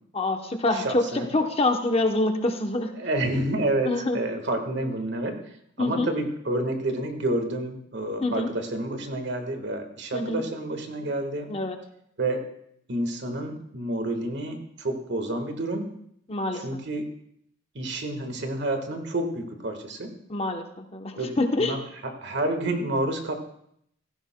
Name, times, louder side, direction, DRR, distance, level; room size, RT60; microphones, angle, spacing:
voice 1, 0.1-2.9 3.8-4.2 5.8-6.1 8.2-8.5 10.1-10.4 11.5-11.8 16.3-16.6 20.3-21.8, left 2 dB, 30° left, 5 dB, 0.8 m, -26 dB
voice 2, 0.7-1.3 2.9-5.4 5.8-11.5 12.2-12.4 12.9-15.9 16.5-17.1 17.7-20.2 21.2-21.3 21.6-23.3, right 1 dB, 60° right, 5 dB, 1.5 m, -29 dB
16.5 x 14.5 x 2.2 m, 0.72 s
head